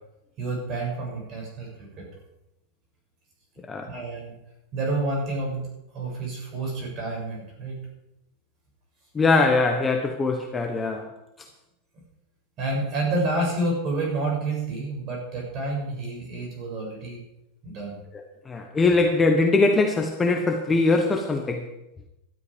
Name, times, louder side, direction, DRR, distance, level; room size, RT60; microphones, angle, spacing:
voice 1, 0.4-2.1 3.8-4.3 4.7-5.7 5.9-7.8 12.6-17.2 17.6-18.0, right 2 dB, 30° right, -1 dB, 7.1 m, -29 dB
voice 2, 9.1-11.1 18.5-21.7, left 3 dB, 10° left, 3 dB, 1.0 m, -22 dB
17.0 x 13.0 x 5.1 m, 0.90 s
supercardioid pair, 170°, 0 cm